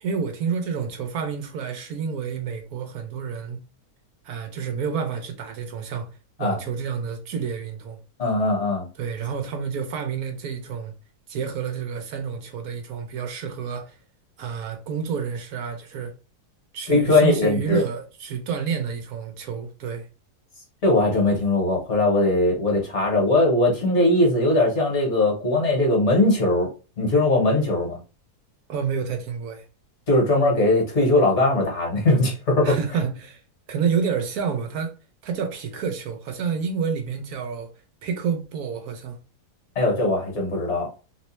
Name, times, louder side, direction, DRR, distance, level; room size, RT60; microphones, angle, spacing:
voice 1, 0.0-3.6 4.2-6.1 6.4-8.0 9.0-10.9 11.3-14.0 14.4-16.1 16.7-20.1 28.7-29.7 32.6-33.4 33.7-34.9 35.2-37.7 38.0-39.2, right 6 dB, 70° right, 1.0 m, -29 dB
voice 2, 8.2-8.9 16.9-17.8 20.8-26.7 27.0-28.0 30.1-32.8 39.7-40.9, left 2 dB, 50° left, 1.3 m, -20 dB
3.1 x 2.9 x 3.1 m
omnidirectional pair, 1.7 m